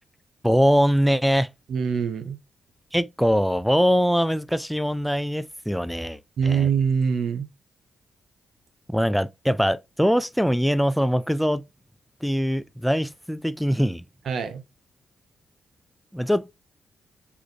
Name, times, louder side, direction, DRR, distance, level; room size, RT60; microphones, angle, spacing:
voice 1, 0.4-1.5 2.9-6.2 6.4-6.7 8.9-11.6 12.2-14.0 16.1-16.5, equal, ahead, 0.4 m, -22 dB
voice 2, 1.7-2.4 6.4-7.5 14.2-14.6, right 6 dB, 75° right, 0.7 m, -24 dB
4.8 x 2.6 x 2.6 m
supercardioid pair, 55°, 0 cm